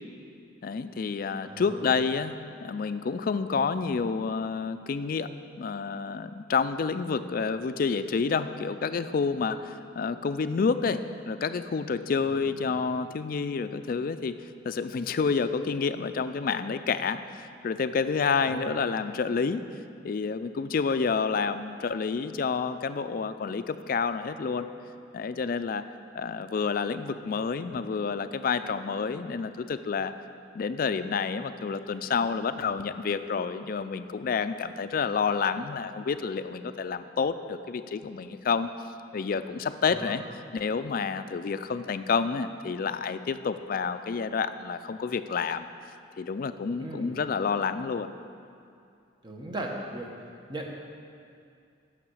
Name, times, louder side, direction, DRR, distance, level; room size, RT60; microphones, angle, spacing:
voice 1, 0.6-2.4 2.6-5.3 5.6-14.4 14.6-19.6 20.0-24.7 25.1-25.8 26.1-30.1 30.5-38.7 39.1-40.2 40.5-45.7 46.2-48.2, left 5 dB, 50° left, 11 dB, 0.4 m, -29 dB
voice 2, 1.4-2.0 12.4-12.7 18.4-18.7 39.8-40.2 46.8-47.2 49.2-50.1 50.5-50.7, right 1 dB, 25° right, 1 dB, 1.0 m, -38 dB
8.9 x 6.5 x 6.2 m, 2.4 s
head